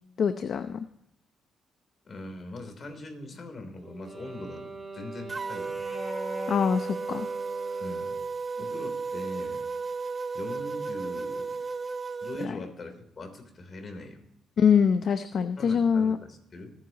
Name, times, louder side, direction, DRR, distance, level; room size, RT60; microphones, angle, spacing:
voice 1, 0.2-0.9 6.5-7.3 12.4-12.5 14.6-16.2, left 7 dB, 55° left, 9 dB, 0.8 m, -24 dB
voice 2, 2.1-5.8 7.8-8.2 8.6-9.6 10.3-11.6 12.2-14.2 15.6-16.7, left 2 dB, 40° left, 5 dB, 3.5 m, -41 dB
Wind instrument woodwind instrument, 3.8-8.3, right 1 dB, 5° right, 6.3 m, -41 dB
sound 1, 5.3-12.5, right 4 dB, 30° right, 0.9 m, -34 dB
24.0 x 9.9 x 3.0 m, 0.77 s
cardioid pair, 90°, 0 cm